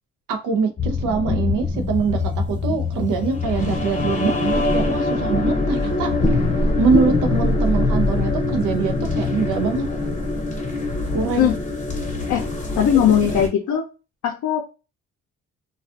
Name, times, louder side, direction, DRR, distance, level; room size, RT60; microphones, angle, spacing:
voice 1, 0.3-6.3 6.6-9.9 11.1-11.5, right 5 dB, 85° right, 0.5 m, -23 dB
sound 1, 0.8-13.5, left 3 dB, 25° left, 0.7 m, -23 dB
voice 2, 12.8-13.8 14.2-14.6, left 9 dB, 70° left, 0.5 m, -18 dB
2.4 x 2.3 x 2.4 m
cardioid pair, 90°, 30 cm